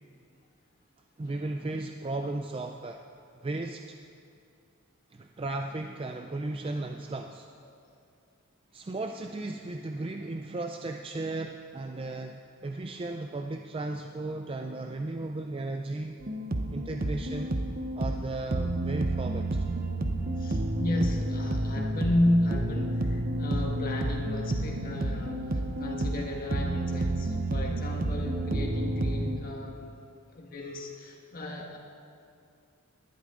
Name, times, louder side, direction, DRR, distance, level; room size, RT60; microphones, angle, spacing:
voice 1, 1.2-3.0 3.4-4.0 5.1-7.5 8.7-16.2 16.7-17.6 18.0-19.7, right 2 dB, 25° right, 5 dB, 0.4 m, -35 dB
sound 1, 16.2-29.4, right 1 dB, 40° right, 0.8 m, -30 dB
voice 2, 20.4-29.9 30.3-31.8, left 1 dB, 40° left, 0 dB, 1.7 m, -32 dB
19.5 x 12.0 x 3.8 m, 2.4 s
head